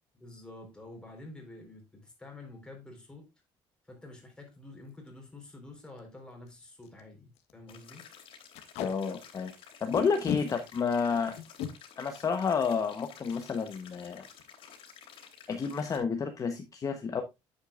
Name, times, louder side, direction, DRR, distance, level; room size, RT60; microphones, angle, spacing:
voice 1, 0.1-3.3 3.9-8.1, left 2 dB, 10° left, 4.3 m, -48 dB
Packing tape duct tape, 4.9-5.1 5.5-5.6 5.8-6.0 6.5-6.6 6.8-7.0 7.3-7.5 8.5-8.9 9.9-10.4 11.4-11.7 13.3-13.4 13.8-14.0 14.2-14.6, left 10 dB, 85° left, 1.4 m, -36 dB
sound 1, 7.7-16.0, left 7 dB, 60° left, 3.0 m, -52 dB
voice 2, 8.8-9.5 9.8-11.4 12.0-14.2 15.5-17.2, left 5 dB, 35° left, 1.1 m, -30 dB
9.9 x 8.2 x 2.5 m
cardioid pair, 120°, 11 cm